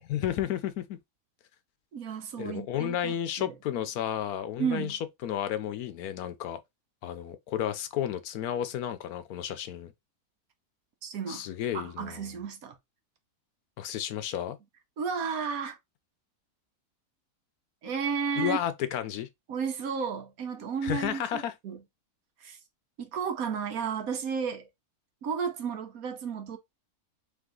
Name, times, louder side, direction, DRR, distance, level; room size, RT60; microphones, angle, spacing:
voice 1, 0.0-1.0 2.4-6.6 7.0-9.9 11.3-12.3 13.8-14.6 18.4-19.3 20.8-21.5, left 10 dB, 80° left, 1.1 m, -32 dB
voice 2, 1.9-3.5 4.6-5.0 11.0-11.5 11.7-12.8 15.0-15.8 17.8-18.6 19.5-21.8 22.4-22.6 23.0-24.7 25.2-26.6, right 6 dB, 70° right, 1.3 m, -33 dB
3.5 x 3.4 x 3.7 m
omnidirectional pair, 1.6 m